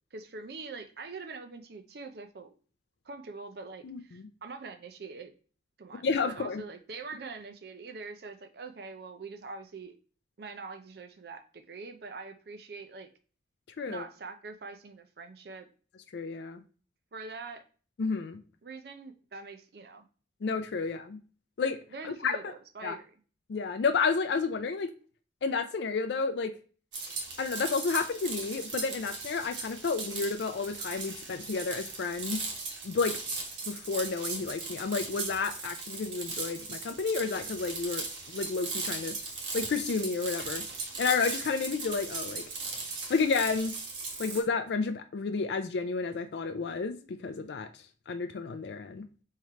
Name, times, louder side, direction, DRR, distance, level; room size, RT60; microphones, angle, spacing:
voice 1, 0.1-2.5 3.1-5.3 5.8-9.9 10.4-13.1 13.8-15.7 17.1-17.6 18.6-20.0 21.9-23.2, right 4 dB, 55° right, 7 dB, 0.5 m, -44 dB
voice 2, 3.8-4.3 6.0-6.6 13.8-14.0 16.1-16.6 18.0-18.4 20.4-21.2 21.6-21.8 22.0-22.4 22.8-23.0 23.5-24.9 25.4-26.5 27.4-32.4 32.8-33.2 33.7-38.1 38.3-39.2 39.5-40.6 41.0-42.4 43.1-43.7 44.2-47.7 48.1-49.1, left 4 dB, 70° left, 7 dB, 0.4 m, -31 dB
sound 1, 26.9-44.4, right 4 dB, 80° right, 1.2 m, -38 dB
3.7 x 3.1 x 4.3 m, 0.39 s
head